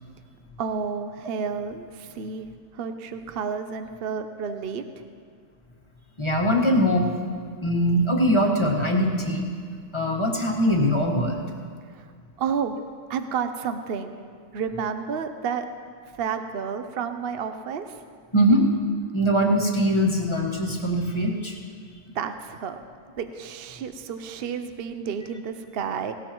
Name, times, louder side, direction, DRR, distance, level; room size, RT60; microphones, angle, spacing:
voice 1, 0.6-4.8 11.9-12.1 12.4-12.8 13.1-14.1 14.5-15.7 16.2-18.0 22.1-22.8 23.2-26.1, right 6 dB, 55° right, 8 dB, 0.7 m, -31 dB
voice 2, 6.2-7.2 7.6-9.5 9.9-11.5 18.3-18.7 19.1-21.6, equal, 20° left, -1 dB, 1.4 m, -22 dB
18.0 x 17.5 x 3.0 m, 2.1 s
omnidirectional pair, 1.6 m